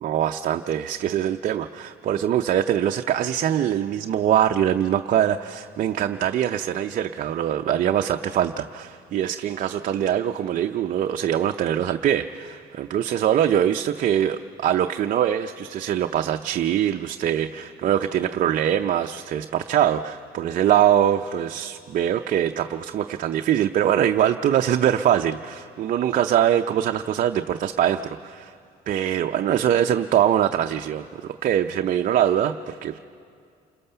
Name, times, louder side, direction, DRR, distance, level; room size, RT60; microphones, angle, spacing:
voice 1, 0.0-28.5 28.9-33.0, right 10 dB, 50° right, 5 dB, 0.6 m, -23 dB
28.5 x 21.0 x 6.8 m, 2.3 s
cardioid pair, 110°, 17 cm